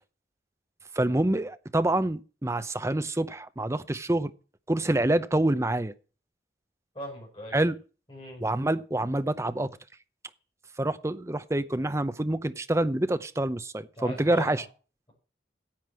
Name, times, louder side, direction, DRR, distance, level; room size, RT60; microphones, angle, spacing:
voice 1, 1.0-4.3 4.7-5.9 7.5-7.7 8.4-9.7 10.8-14.6, right 1 dB, 15° right, 0.7 m, -26 dB
voice 2, 6.9-7.6 8.1-8.4 14.0-14.6, equal, 30° left, 6.7 m, -39 dB
10.5 x 7.9 x 7.5 m
head